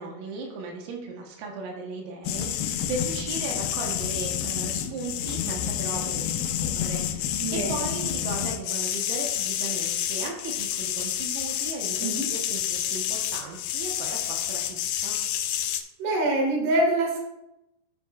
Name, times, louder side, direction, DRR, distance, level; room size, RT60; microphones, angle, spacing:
voice 1, 0.0-15.2, right 3 dB, 85° right, -1 dB, 4.0 m, -37 dB
Toy Robot, 2.3-15.8, left 10 dB, 80° left, 2.5 m, -29 dB
voice 2, 7.4-7.9 12.0-12.2 16.0-17.3, right 1 dB, 60° right, -1 dB, 3.7 m, -25 dB
13.5 x 5.9 x 2.5 m, 0.90 s
omnidirectional pair, 5.9 m